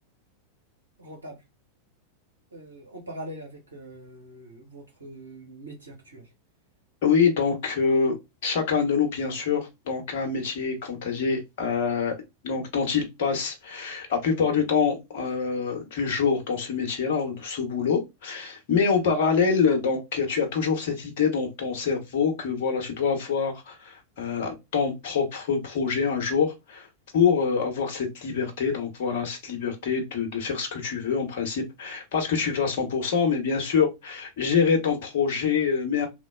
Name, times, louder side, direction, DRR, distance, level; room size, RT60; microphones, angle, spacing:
voice 1, 1.0-1.4 2.5-6.3 18.9-19.0, right 1 dB, 75° right, 0.8 m, -42 dB
voice 2, 7.0-8.1 8.4-12.1 12.4-26.9 27.1-36.1, left 6 dB, 50° left, 0.9 m, -25 dB
3.1 x 2.1 x 2.3 m
figure-of-eight pair, 90°, 0 cm